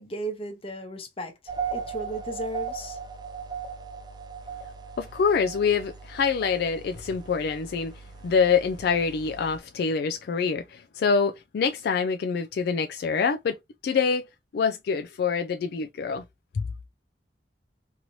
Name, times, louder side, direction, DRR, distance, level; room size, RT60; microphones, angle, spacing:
voice 1, 0.0-1.3 1.7-3.0, right 1 dB, 30° left, 0.8 m, -35 dB
sound 1, 1.5-9.6, right 6 dB, 25° right, 0.3 m, -38 dB
voice 2, 5.0-7.9 8.2-13.6 13.8-14.3 14.5-16.2, left 5 dB, 60° left, 0.3 m, -25 dB
2.9 x 2.6 x 2.9 m
head